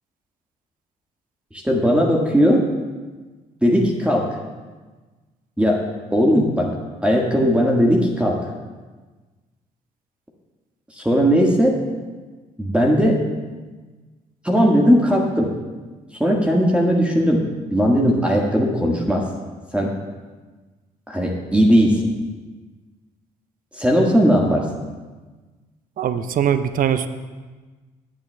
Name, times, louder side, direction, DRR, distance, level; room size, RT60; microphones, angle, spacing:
voice 1, 1.6-2.6 3.6-4.3 5.6-5.8 6.1-6.7 7.0-8.4 10.9-11.8 12.6-13.2 14.4-15.5 16.2-17.4 17.7-19.2 19.7-19.9 21.1-22.0 23.7-24.6, equal, 5° right, -1 dB, 1.5 m, -17 dB
voice 2, 26.0-27.1, right 9 dB, 45° right, 12 dB, 0.6 m, -21 dB
16.5 x 8.7 x 2.2 m, 1.3 s
hypercardioid pair, 50°, 19 cm